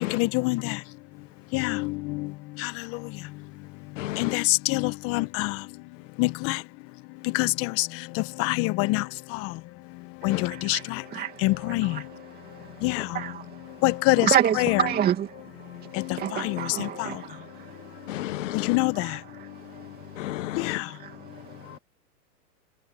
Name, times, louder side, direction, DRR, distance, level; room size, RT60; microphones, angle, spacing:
voice 1, 0.1-0.6 1.5-1.8 4.2-4.4 4.7-5.5 6.2-6.6 7.4-7.5 8.4-9.0 10.2-10.4 10.7-10.8 11.4-11.9 12.8-13.0 13.8-14.9 18.7-18.9, left 23 dB, 30° left, 1.4 m, -24 dB
voice 2, 4.0-4.3 10.3-10.4 18.1-18.7 20.2-20.8, left 15 dB, 50° left, 1.0 m, -32 dB
voice 3, 10.5-10.8 11.1-11.3 11.8-12.0 13.1-13.4 14.2-15.3 16.1-17.5 19.0-19.1 21.0-21.2, right 10 dB, 20° right, 2.5 m, -27 dB
hypercardioid pair, 135°, 47 cm